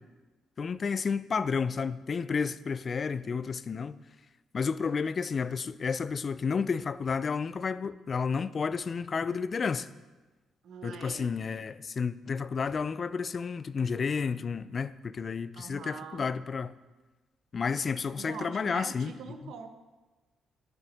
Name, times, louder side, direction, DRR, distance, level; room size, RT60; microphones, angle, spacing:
voice 1, 0.6-4.0 4.5-9.9 10.8-16.7 17.5-19.1, left 5 dB, 40° left, 0.3 m, -31 dB
voice 2, 10.6-11.3 15.5-16.3 18.1-19.7, right 5 dB, 70° right, 0.9 m, -43 dB
8.3 x 7.2 x 5.2 m
cardioid pair, 90°, 0 cm